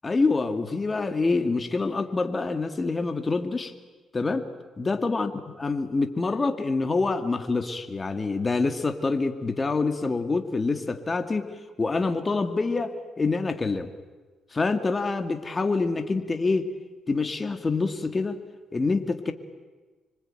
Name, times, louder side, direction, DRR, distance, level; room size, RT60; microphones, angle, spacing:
voice 1, 0.0-3.7 4.1-4.5 4.8-5.3 5.6-11.5 11.8-13.9 14.5-16.7 17.1-18.4 18.7-19.3, left 3 dB, 25° left, 7 dB, 2.3 m, -26 dB
26.0 x 24.5 x 9.1 m, 1.3 s
cardioid pair, 90°, 0 cm